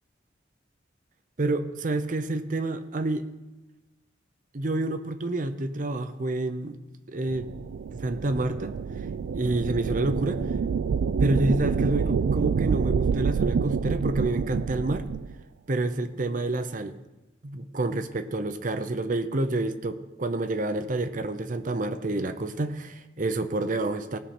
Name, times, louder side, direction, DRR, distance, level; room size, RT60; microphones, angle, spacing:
voice 1, 1.4-3.3 4.5-6.8 7.1-7.5 7.9-8.8 9.3-10.4 11.2-15.1 15.7-17.0 17.4-24.2, right 2 dB, 40° right, 10 dB, 0.6 m, -28 dB
sound 1, 7.3-15.3, right 6 dB, 70° right, 0.3 m, -27 dB
18.5 x 6.2 x 4.3 m, 1.1 s
head